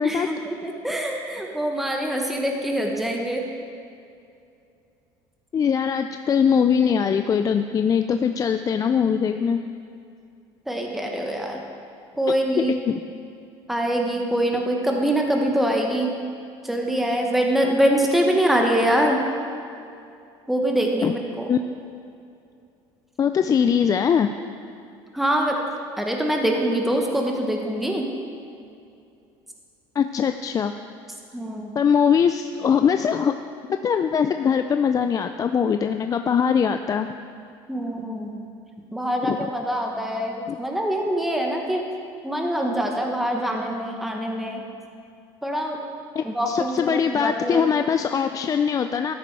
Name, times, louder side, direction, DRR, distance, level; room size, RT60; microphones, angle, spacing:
voice 1, 0.0-3.4 10.7-11.6 12.2-12.7 13.7-16.1 16.6-19.2 20.5-21.5 25.1-25.6 26.0-28.0 31.3-31.7 37.7-38.4 38.9-41.8 42.2-44.6 45.4-45.8 46.2-47.7, right 1 dB, ahead, 1 dB, 1.1 m, -24 dB
voice 2, 5.5-9.6 12.6-13.0 21.0-21.1 21.5-21.6 23.2-24.3 30.0-30.7 31.8-33.3 33.8-37.1 39.2-39.5 40.5-40.6 46.2-49.1, left 7 dB, 30° left, 8 dB, 0.4 m, -21 dB
13.0 x 6.7 x 4.7 m, 2.5 s
supercardioid pair, 100°, 11 cm